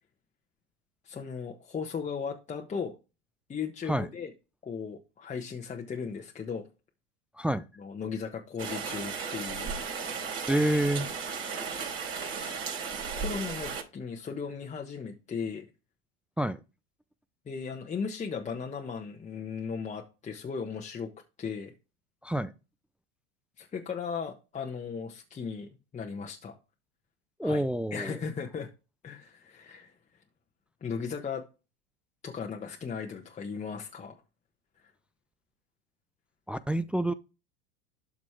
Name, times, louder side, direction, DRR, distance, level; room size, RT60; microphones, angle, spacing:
voice 1, 1.0-3.0 3.5-4.3 4.6-6.6 7.8-9.7 12.1-12.6 13.2-15.6 17.5-21.1 21.4-21.7 23.6-26.6 27.4-27.6 27.9-28.7 29.0-29.9 30.8-31.5 32.2-34.2, left 6 dB, 20° left, 1.2 m, -37 dB
Rain, 8.6-13.8, right 5 dB, 40° right, 4.1 m, -35 dB
voice 2, 10.5-11.1 16.4-16.6 22.2-22.5 27.4-28.2 36.5-37.1, right 1 dB, 5° right, 0.3 m, -28 dB
12.5 x 4.1 x 3.2 m
hypercardioid pair, 100°, 33 cm